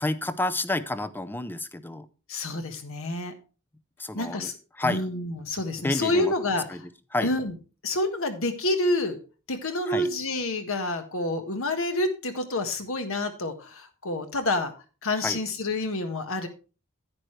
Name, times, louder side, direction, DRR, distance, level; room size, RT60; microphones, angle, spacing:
voice 1, 0.0-2.1 4.0-4.5 4.8-5.0 5.8-6.3 6.7-6.8 7.1-7.3 9.9-10.1 15.2-15.4, left 2 dB, 10° left, 14 dB, 0.5 m, -29 dB
voice 2, 2.3-3.3 4.1-6.7 7.2-7.5 7.8-9.2 9.5-14.7 15.0-16.5, left 2 dB, 65° left, 7 dB, 1.5 m, -28 dB
10.5 x 9.1 x 3.2 m, 0.34 s
head